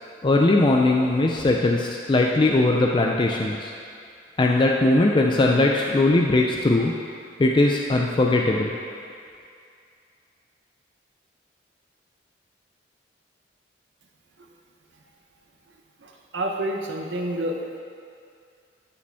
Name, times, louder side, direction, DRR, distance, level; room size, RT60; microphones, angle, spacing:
voice 1, 0.2-3.7 4.4-6.9 7.4-8.7, left 2 dB, 25° left, 0 dB, 0.4 m, -20 dB
voice 2, 16.0-17.6, right 1 dB, 80° right, 1 dB, 0.9 m, -28 dB
12.5 x 5.0 x 3.5 m, 2.4 s
head